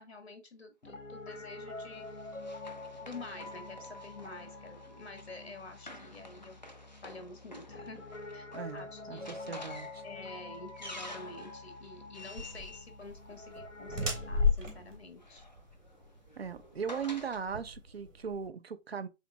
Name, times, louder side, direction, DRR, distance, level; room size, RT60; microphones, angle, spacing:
voice 1, 0.0-2.2 3.0-6.6 7.0-9.5 10.0-15.5, left 3 dB, 55° left, 1.2 m, -49 dB
Piano, 0.8-14.5, left 2 dB, 80° left, 0.8 m, -46 dB
Run, 1.3-13.9 14.9-17.4, left 1 dB, 40° left, 0.4 m, -51 dB
voice 2, 8.5-10.0 16.4-19.1, right 7 dB, 55° right, 0.5 m, -38 dB
sound 1, 12.4-18.5, left 4 dB, 85° right, 1.8 m, -35 dB
7.0 x 2.5 x 2.2 m
figure-of-eight pair, 145°, 37 cm